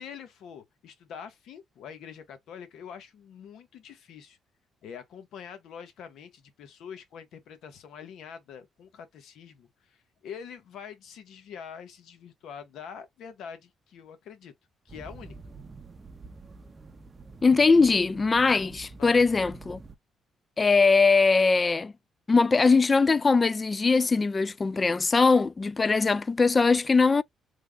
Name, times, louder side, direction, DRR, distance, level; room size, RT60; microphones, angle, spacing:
voice 1, 0.0-4.4 4.8-14.5 14.8-15.4 19.0-19.3, left 7 dB, 80° left, 1.0 m, -45 dB
sound 1, 14.9-20.0, right 3 dB, 30° right, 0.6 m, -46 dB
voice 2, 17.4-19.8 20.6-21.9 22.3-27.2, left 4 dB, 30° left, 0.3 m, -21 dB
3.4 x 2.1 x 3.5 m
cardioid pair, 90°, 0 cm